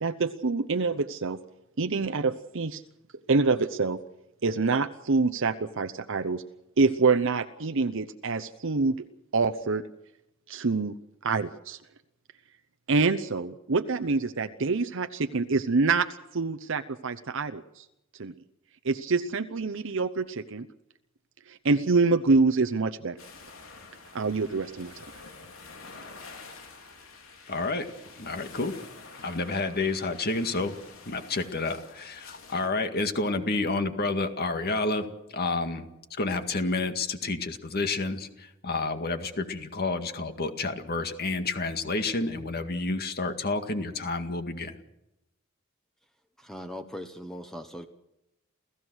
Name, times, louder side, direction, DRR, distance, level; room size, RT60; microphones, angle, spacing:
voice 1, 0.0-1.4 1.8-2.8 3.3-4.0 4.4-6.4 6.8-8.9 9.3-9.8 10.5-10.9 11.2-11.8 12.9-16.1 16.3-17.8 18.2-18.3 18.8-20.7 21.5-23.2 24.1-24.9, right 4 dB, 65° right, 9 dB, 0.8 m, -26 dB
sound 1, 23.2-32.7, left 4 dB, 75° left, 4.1 m, -48 dB
voice 2, 27.5-27.9 28.2-28.7 29.2-30.7 31.1-44.8, left 3 dB, 50° left, 7 dB, 2.0 m, -30 dB
voice 3, 46.4-47.9, equal, ahead, 6 dB, 1.1 m, -39 dB
28.5 x 15.5 x 6.4 m, 0.88 s
head